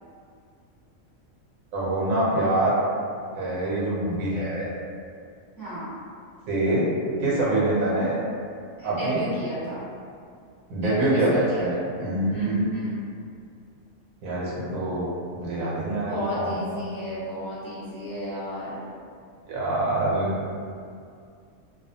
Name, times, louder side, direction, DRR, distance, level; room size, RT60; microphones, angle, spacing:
voice 1, 1.7-2.8 3.4-4.7 6.5-6.9 7.2-8.2 8.8-9.2 10.7-12.7 14.2-16.8 19.5-20.3, right 1 dB, 75° right, -6 dB, 1.1 m, -25 dB
voice 2, 5.6-5.9 8.8-9.8 10.8-11.6 12.3-13.0 16.0-18.9, equal, 20° left, -14 dB, 0.7 m, -33 dB
2.5 x 2.3 x 2.6 m, 2.3 s
omnidirectional pair, 1.5 m